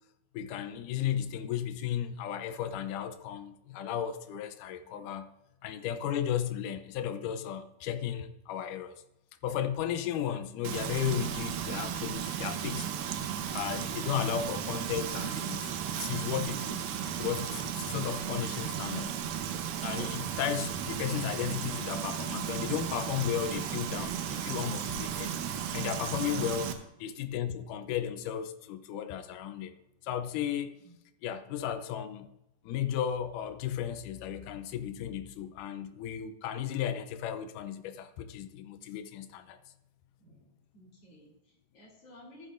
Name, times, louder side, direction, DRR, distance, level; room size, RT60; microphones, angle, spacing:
voice 1, 0.3-5.3 5.6-9.0 9.4-12.9 13.5-16.8 17.2-19.2 19.8-25.3 25.7-26.7 27.0-29.8 30.0-30.7 31.2-32.3 32.6-39.6, left 9 dB, 80° left, 1.9 m, -34 dB
Frying (food), 10.6-26.7, right 9 dB, 75° right, 2.6 m, -35 dB
voice 2, 40.2-42.5, equal, 40° left, 3.6 m, -56 dB
15.0 x 12.0 x 2.6 m
omnidirectional pair, 4.3 m